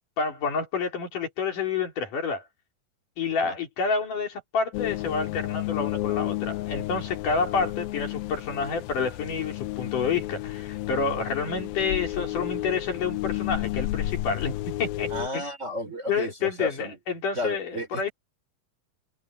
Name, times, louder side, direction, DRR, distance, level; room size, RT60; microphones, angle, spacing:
voice 1, 0.2-2.4 3.2-15.1 15.3-15.5 16.1-18.1, left 5 dB, 60° left, 4.8 m, -29 dB
sound 1, 4.7-15.3, left 16 dB, 80° left, 2.5 m, -32 dB
voice 2, 15.1-17.0 17.3-18.1, equal, 20° right, 4.1 m, -33 dB
omnidirectional pair, 4.4 m